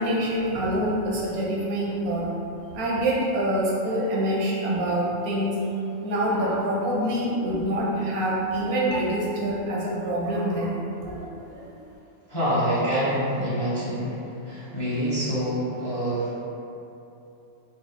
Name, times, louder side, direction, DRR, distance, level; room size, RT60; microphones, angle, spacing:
voice 1, 0.0-2.2 2.7-5.6 6.0-11.8, right 1 dB, 80° right, -4 dB, 1.2 m, -26 dB
voice 2, 12.3-16.4, equal, 25° left, -10 dB, 0.7 m, -26 dB
4.0 x 2.4 x 4.0 m, 2.9 s
omnidirectional pair, 1.5 m